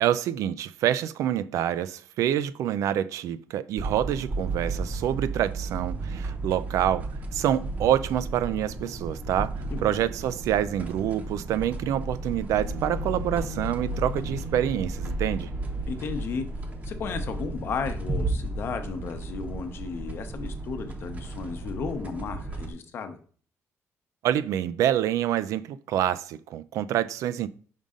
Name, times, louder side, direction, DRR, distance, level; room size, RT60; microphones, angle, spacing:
voice 1, 0.0-15.5 24.2-27.5, right 11 dB, 85° right, 0.4 m, -27 dB
sound 1, 3.8-22.7, right 3 dB, 30° right, 0.8 m, -34 dB
voice 2, 9.7-10.1 15.8-16.5 16.8-23.2, left 5 dB, 45° left, 0.8 m, -34 dB
sound 2, 12.5-17.8, left 2 dB, 60° right, 1.0 m, -37 dB
5.4 x 5.2 x 3.7 m
cardioid pair, 180°, 5 cm